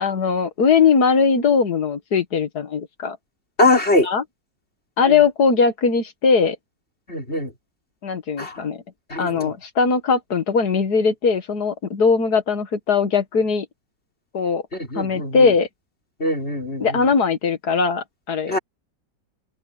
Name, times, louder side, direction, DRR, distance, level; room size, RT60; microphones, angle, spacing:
voice 1, 0.0-3.2 4.0-4.2 5.0-6.6 8.0-8.8 9.2-13.7 14.3-14.6 15.0-15.7 16.8-18.6, left 5 dB, 65° left, 2.1 m, -20 dB
voice 2, 3.6-4.1 5.1-5.2 7.1-7.5 8.4-8.6 9.1-9.5 14.7-15.5 16.2-17.1 18.5-18.6, left 2 dB, 35° left, 5.0 m, -22 dB
open air
omnidirectional pair, 1.9 m